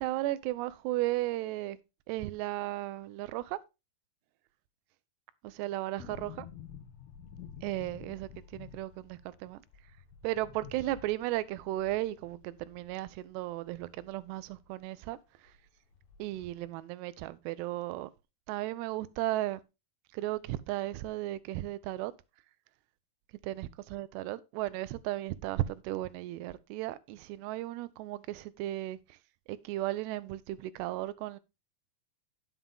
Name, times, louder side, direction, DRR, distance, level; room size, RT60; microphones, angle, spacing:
voice 1, 0.0-1.8 2.1-3.6 5.4-6.5 7.6-9.6 10.2-15.2 16.2-18.1 18.5-19.6 20.1-22.1 23.4-29.0 29.5-31.4, right 16 dB, 85° right, 2.7 m, -35 dB
sound 1, 6.0-14.8 15.1-15.2 15.5-16.5 16.7-16.8, left 8 dB, 70° left, 2.8 m, -51 dB
9.5 x 7.4 x 3.5 m
omnidirectional pair, 4.9 m